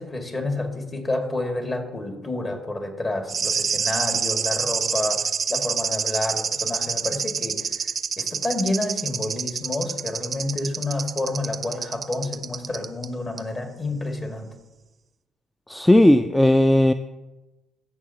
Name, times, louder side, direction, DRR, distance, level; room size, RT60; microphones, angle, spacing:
voice 1, 0.0-14.5, left 2 dB, 35° left, 4 dB, 1.8 m, -29 dB
sound 1, 3.3-13.1 13.4-13.5, right 6 dB, 45° right, 0.5 m, -27 dB
voice 2, 15.7-16.9, left 1 dB, 10° left, 10 dB, 0.3 m, -16 dB
15.5 x 6.2 x 2.8 m, 1.1 s
hypercardioid pair, 55°, 0 cm